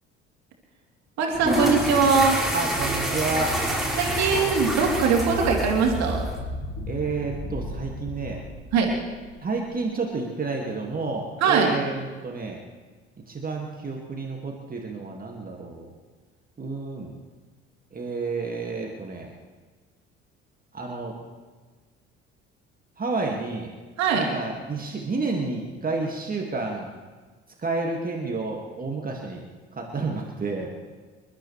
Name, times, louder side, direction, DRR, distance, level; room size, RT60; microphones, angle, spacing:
voice 1, 1.2-2.4 4.0-6.2 8.7-8.9 11.4-11.7 24.0-24.3, right 5 dB, 55° right, 0 dB, 3.0 m, -21 dB
sound 1, 1.3-6.4, right 1 dB, ahead, 4.6 m, -27 dB
voice 2, 2.5-3.6 6.9-8.4 9.4-12.6 13.3-15.9 16.6-17.1 17.9-19.3 20.7-21.1 23.0-23.7 24.1-26.9 27.6-29.4 29.7-30.7, right 3 dB, 25° right, 0 dB, 2.3 m, -30 dB
sound 2, 2.7-9.8, left 1 dB, 45° left, 4.0 m, -36 dB
27.5 x 13.0 x 3.4 m, 1.4 s
figure-of-eight pair, 50°, 33 cm